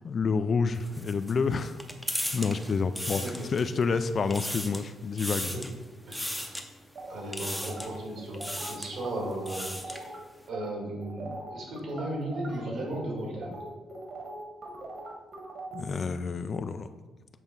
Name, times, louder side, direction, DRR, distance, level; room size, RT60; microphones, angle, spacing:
voice 1, 0.0-1.8 2.3-3.2 3.5-5.6 15.7-16.9, left 5 dB, 40° left, 11 dB, 0.3 m, -28 dB
sound 1, 0.7-3.8 4.2-4.9 5.2-5.7 6.1-6.6 7.3-8.0 8.3-8.9 9.3-10.1, equal, ahead, 0.6 m, -36 dB
voice 2, 6.1-6.6 7.1-10.2 10.5-13.6, right 1 dB, 65° right, -2 dB, 2.3 m, -36 dB
sound 2, 6.9-10.2 10.5-10.7 11.0-15.8, right 2 dB, 45° right, 1.6 m, -41 dB
7.5 x 3.5 x 5.4 m, 1.2 s
cardioid pair, 130°, 0 cm